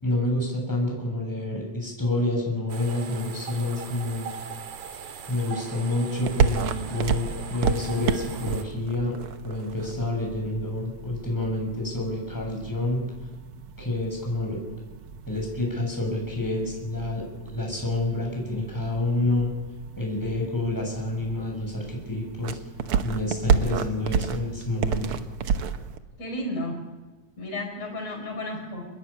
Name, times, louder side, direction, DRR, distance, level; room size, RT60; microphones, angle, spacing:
voice 1, 0.0-4.3 5.3-9.1 9.4-13.0 13.8-14.6 15.3-17.2 17.5-19.5 20.0-22.6 23.0-25.2, left 2 dB, 5° left, 0 dB, 7.0 m, -28 dB
sound 1, 2.7-8.6, right 7 dB, 75° right, 3.3 m, -39 dB
sound 2, 6.1-26.0, right 6 dB, 60° right, 1.7 m, -31 dB
voice 2, 26.2-26.9 27.4-28.9, left 1 dB, 60° left, 1 dB, 5.8 m, -32 dB
26.0 x 21.0 x 8.7 m, 1.2 s
omnidirectional pair, 3.4 m